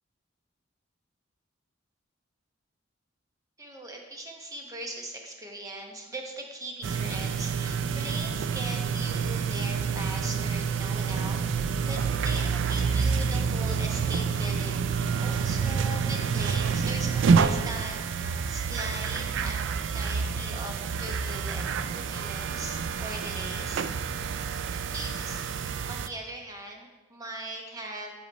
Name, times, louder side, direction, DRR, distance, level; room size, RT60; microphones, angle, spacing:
voice 1, 3.6-11.4 11.9-14.9 15.2-19.7 19.9-21.7 21.9-23.9 24.7-25.4 25.9-28.1, right 1 dB, 20° right, 1 dB, 1.0 m, -40 dB
sound 1, 6.8-26.1, right 6 dB, 65° right, 0.3 m, -28 dB
sound 2, 11.0-20.3 20.8-20.9, left 2 dB, 75° left, 1.4 m, -52 dB
8.0 x 6.0 x 4.1 m, 1.2 s
head